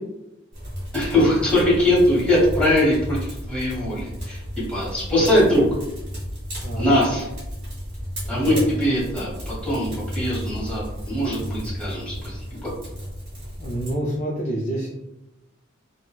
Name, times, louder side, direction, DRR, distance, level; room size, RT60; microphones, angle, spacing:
sound 1, 0.5-13.9, equal, 45° right, 1.4 m, -33 dB
voice 1, 0.9-4.4 4.7-5.7 6.8-7.3 8.3-12.7, left 1 dB, 5° left, -7 dB, 1.1 m, -21 dB
voice 2, 6.6-7.1 8.3-8.7 13.6-14.9, right 1 dB, 35° left, -5 dB, 0.5 m, -27 dB
3.8 x 2.2 x 2.2 m, 0.92 s
head